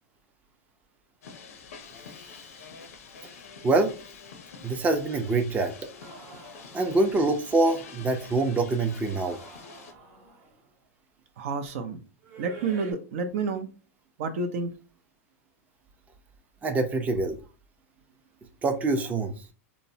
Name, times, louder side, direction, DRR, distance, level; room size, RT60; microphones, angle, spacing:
sound 1, 1.2-9.9, left 5 dB, 85° left, 0.6 m, -47 dB
voice 1, 4.6-5.7 6.7-9.4 16.6-17.4 18.6-19.3, right 3 dB, 20° right, 5 dB, 0.5 m, -25 dB
sound 2, 6.0-7.6 8.9-10.7 12.2-12.9, right 5 dB, 50° right, 0.9 m, -48 dB
voice 2, 11.4-12.0 12.4-13.7 14.2-14.7, right 4 dB, 65° right, 7 dB, 0.5 m, -30 dB
3.0 x 2.0 x 2.7 m, 0.34 s
hypercardioid pair, 120°, 8 cm